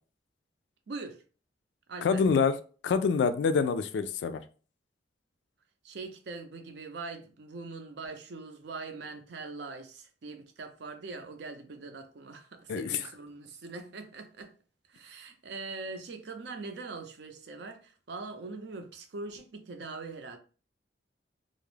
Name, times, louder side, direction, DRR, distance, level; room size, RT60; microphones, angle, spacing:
voice 1, 0.9-1.2 1.9-2.2 5.8-14.5 14.9-20.4, right 3 dB, 70° right, 0.5 m, -42 dB
voice 2, 2.0-2.6 2.8-4.4 12.7-13.0, left 5 dB, 85° left, 0.3 m, -26 dB
2.3 x 2.0 x 3.1 m
head